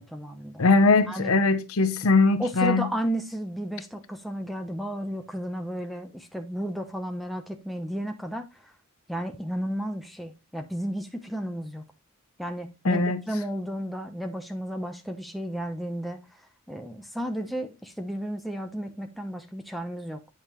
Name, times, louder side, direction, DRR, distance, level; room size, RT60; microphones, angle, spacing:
voice 1, 0.0-0.7 1.1-1.3 2.4-8.5 9.1-11.8 12.4-16.2 16.7-20.2, equal, ahead, 0.8 m, -33 dB
voice 2, 0.6-2.9 12.8-13.2, left 3 dB, 90° left, 0.8 m, -21 dB
8.5 x 5.5 x 3.0 m
head